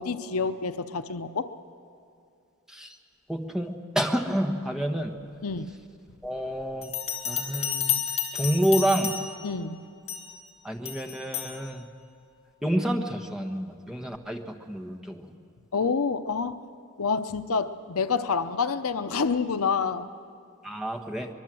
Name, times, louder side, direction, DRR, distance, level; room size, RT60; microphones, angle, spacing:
voice 1, 0.0-1.5 5.4-5.7 9.4-9.8 15.7-16.6 17.0-20.1, left 5 dB, 75° left, 11 dB, 0.7 m, -28 dB
voice 2, 3.3-5.1 6.2-6.9 7.2-8.0 8.3-9.1 10.6-11.9 12.6-15.3 20.6-21.3, right 1 dB, 5° right, 3 dB, 1.3 m, -28 dB
Bell, 6.8-9.5 10.1-10.4 10.9-11.6, left 8 dB, 25° left, 2.0 m, -31 dB
24.0 x 21.5 x 7.7 m, 2.4 s
head